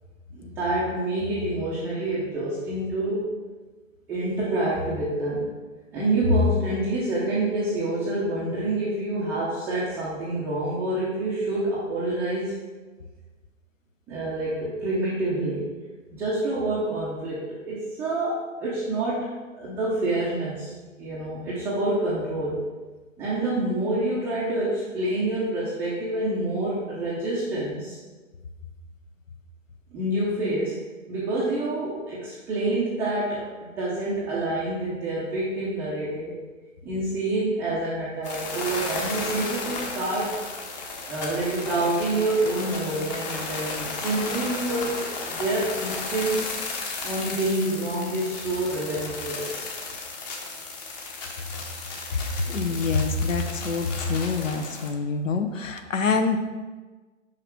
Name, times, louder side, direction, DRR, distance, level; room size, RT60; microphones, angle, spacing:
voice 1, 0.3-3.3 4.1-5.5 5.9-12.6 14.1-15.7 16.1-22.6 23.2-28.0 29.9-30.8 31.1-36.4 36.8-40.4 41.1-46.5 47.0-49.6, right 1 dB, 5° right, -10 dB, 0.5 m, -27 dB
sound 1, 38.2-54.9, left 3 dB, 35° left, 1.1 m, -34 dB
voice 2, 52.1-56.4, left 4 dB, 75° left, 6 dB, 1.0 m, -26 dB
5.9 x 5.2 x 4.6 m, 1.3 s
hypercardioid pair, 135°, 39 cm